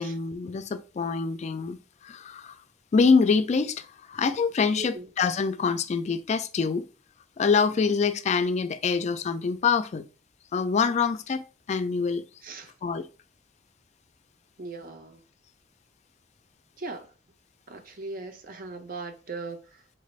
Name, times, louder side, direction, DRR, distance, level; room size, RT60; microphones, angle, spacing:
voice 1, 0.0-1.8 2.0-2.5 2.9-6.8 7.4-10.0 10.5-12.2 12.8-13.1, left 5 dB, 40° left, 0.3 m, -25 dB
voice 2, 4.7-5.1 12.4-12.7 14.6-15.2 16.8-17.1 17.7-19.6, right 3 dB, 50° right, 0.6 m, -38 dB
4.0 x 2.4 x 3.1 m
head